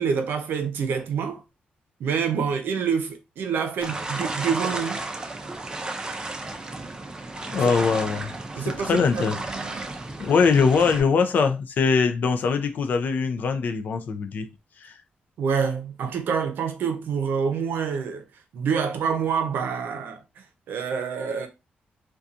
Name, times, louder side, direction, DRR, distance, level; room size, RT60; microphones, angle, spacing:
voice 1, 0.0-1.4 2.0-5.0 7.5-7.6 8.6-9.9 15.4-18.2 18.5-21.5, right 6 dB, 80° right, 0.6 m, -27 dB
sound 1, 3.8-11.0, right 2 dB, 20° right, 0.4 m, -33 dB
voice 2, 7.4-8.3 8.8-9.4 10.2-14.5 14.8-15.0, left 5 dB, 60° left, 0.4 m, -22 dB
2.7 x 2.2 x 2.5 m
cardioid pair, 120°, 3 cm